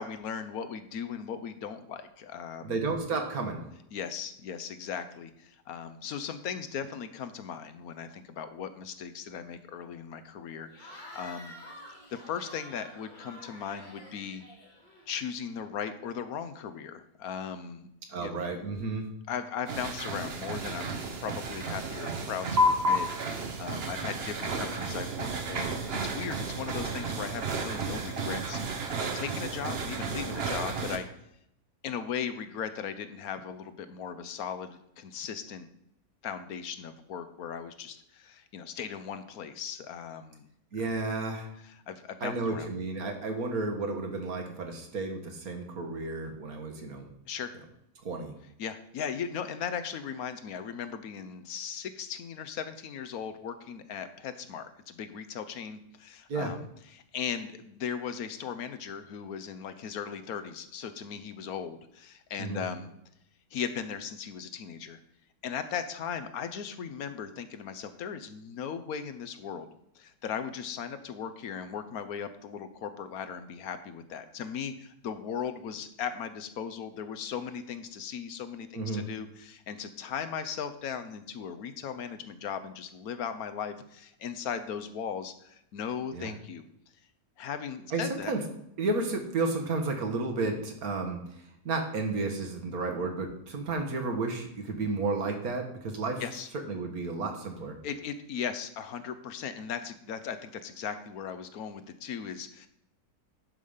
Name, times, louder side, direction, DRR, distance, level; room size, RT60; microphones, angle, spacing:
voice 1, 0.0-2.8 3.9-11.5 12.1-14.4 15.1-18.3 19.3-31.1 31.8-35.7 36.2-40.5 41.6-42.7 47.3-47.5 48.6-56.7 56.9-62.9 63.5-65.0 65.4-86.6 87.4-88.3 96.2-96.5 97.8-102.7, left 7 dB, 70° left, 10 dB, 1.2 m, -38 dB
voice 2, 2.6-3.6 18.1-19.1 40.7-41.5 42.2-47.1 48.0-48.3 56.3-56.5 62.4-62.7 78.7-79.0 86.1-86.3 87.9-88.4 88.8-96.2 96.5-97.8, right 3 dB, 70° right, 4 dB, 1.9 m, -32 dB
Cheering / Crowd, 10.7-15.3, left 1 dB, 30° left, 2.3 m, -49 dB
sound 1, 19.7-31.0, right 1 dB, 45° right, 1.1 m, -32 dB
11.0 x 5.1 x 5.5 m, 0.77 s
omnidirectional pair, 1.6 m